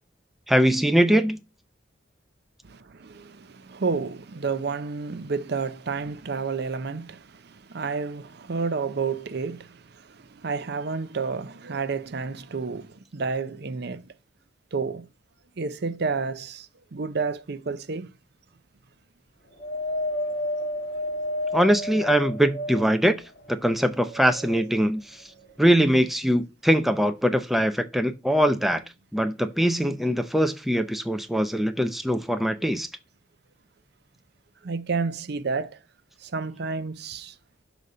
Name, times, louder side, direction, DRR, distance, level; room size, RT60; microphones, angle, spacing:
voice 1, 0.5-1.4 21.5-23.1 23.5-25.2 25.6-28.8 29.1-32.9, equal, ahead, 0.5 m, -22 dB
voice 2, 2.7-7.2 7.5-9.8 10.1-14.0 14.7-15.1 15.6-16.7 16.9-18.1 34.6-35.8 36.2-37.3, right 4 dB, 60° right, 0.6 m, -30 dB
Wind, 19.6-23.1 23.7-24.7 25.5-25.6, left 1 dB, 65° left, 1.6 m, -31 dB
6.3 x 4.1 x 5.3 m
head